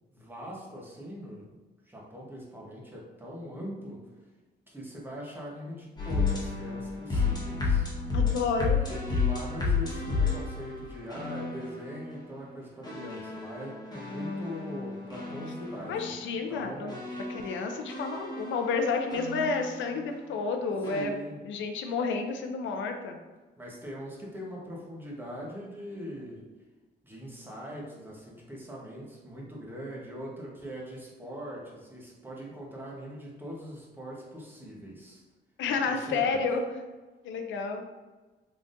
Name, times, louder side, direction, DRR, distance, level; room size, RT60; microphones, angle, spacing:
voice 1, 0.1-1.6 1.9-4.0 4.7-7.9 8.8-16.2 16.5-17.0 20.9-21.4 23.6-26.4 27.0-35.2 35.7-36.4, equal, 10° right, -4 dB, 1.1 m, -41 dB
sound 1, 6.0-12.0 12.8-16.1 16.9-20.0 20.8-21.0, left 4 dB, 20° left, 1.2 m, -31 dB
voice 2, 8.1-8.8 15.9-16.9 17.3-21.1 21.5-23.2 35.6-36.7 37.2-37.8, left 4 dB, 75° left, 5 dB, 0.5 m, -30 dB
3.9 x 3.4 x 2.5 m, 1.2 s
cardioid pair, 90°, 20 cm